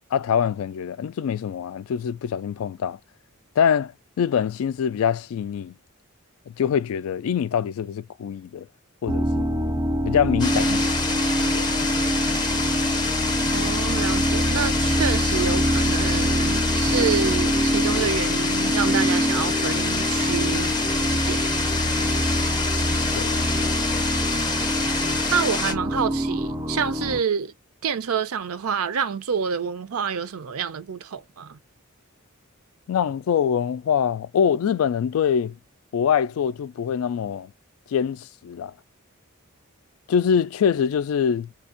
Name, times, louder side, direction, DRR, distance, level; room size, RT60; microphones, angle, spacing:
voice 1, 0.1-3.0 3.6-3.9 4.2-5.7 6.5-8.7 9.0-9.6 10.0-10.8 11.5-11.7 23.1-23.4 32.9-35.6 35.9-37.5 37.9-38.7 40.1-41.5, left 7 dB, 70° left, 0.3 m, -24 dB
sound 1, 9.1-27.2, equal, 15° right, 0.4 m, -25 dB
sound 2, 10.4-25.7, left 3 dB, 20° left, 0.6 m, -27 dB
voice 2, 13.5-20.7 21.1-21.4 25.3-27.5 27.8-31.6, right 6 dB, 75° right, 0.5 m, -27 dB
4.3 x 2.4 x 2.5 m
head